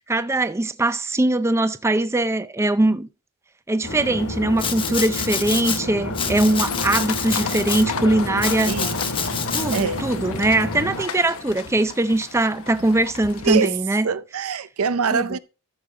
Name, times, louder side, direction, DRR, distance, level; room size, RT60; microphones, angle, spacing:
voice 1, 0.0-3.1 3.7-8.8 9.5-14.1 15.1-15.4, right 2 dB, 10° right, 0.5 m, -21 dB
sound 1, 3.8-11.0, left 2 dB, 85° left, 2.2 m, -30 dB
Domestic sounds home sounds, 4.6-5.8 6.1-7.9 8.4-9.8, left 6 dB, 25° left, 1.0 m, -28 dB
sound 2, 6.7-13.6, left 6 dB, 65° left, 1.0 m, -35 dB
voice 2, 8.7-9.0 9.7-10.0 11.0-11.1 13.4-13.8 14.0-15.4, right 5 dB, 75° right, 0.5 m, -24 dB
13.5 x 6.2 x 3.8 m
head